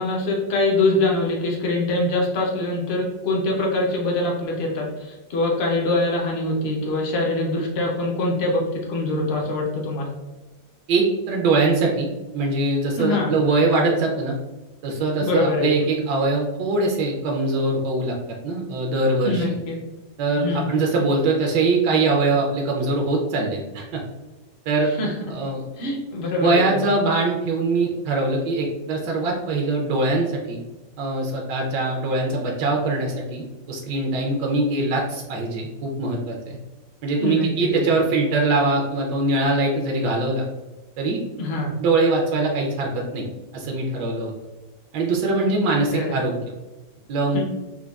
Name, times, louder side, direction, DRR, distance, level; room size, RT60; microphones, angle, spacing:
voice 1, 0.0-10.1 13.0-13.3 15.2-15.9 19.2-19.7 20.4-20.7 25.0-25.1 25.8-26.7 37.2-37.9 41.4-41.7 45.9-46.2 47.3-47.4, left 2 dB, 65° left, -1 dB, 0.6 m, -24 dB
voice 2, 10.9-12.1 12.3-14.3 14.8-18.1 18.4-19.5 20.2-24.0 24.7-24.9 25.3-25.6 26.4-30.6 31.0-36.6 37.0-40.5 41.0-41.2 41.8-43.3 43.5-44.3 44.9-46.4 47.1-47.4, right 3 dB, 80° right, 0 dB, 1.2 m, -22 dB
4.5 x 2.2 x 2.3 m, 1.1 s
omnidirectional pair, 1.9 m